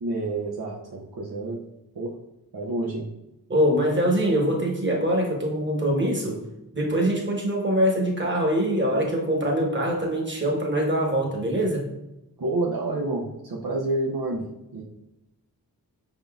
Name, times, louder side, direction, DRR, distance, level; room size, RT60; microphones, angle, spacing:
voice 1, 0.0-1.6 1.9-2.1 2.5-3.1 12.4-14.5 14.7-14.8, right 2 dB, 75° right, -3 dB, 0.7 m, -28 dB
voice 2, 3.5-6.4 6.7-11.9, equal, 30° right, -1 dB, 1.1 m, -23 dB
5.2 x 3.6 x 2.3 m, 0.91 s
wide cardioid pair, 55°, 38 cm